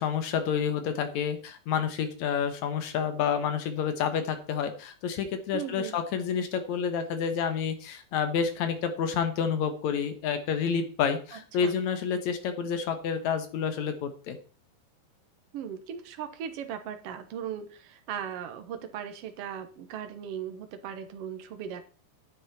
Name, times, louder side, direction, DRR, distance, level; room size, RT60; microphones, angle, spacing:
voice 1, 0.0-14.4, left 7 dB, 60° left, 8 dB, 2.2 m, -29 dB
voice 2, 5.5-6.0 11.3-11.8 15.5-21.8, right 8 dB, 70° right, 8 dB, 1.5 m, -38 dB
9.9 x 9.5 x 4.2 m, 0.38 s
omnidirectional pair, 4.3 m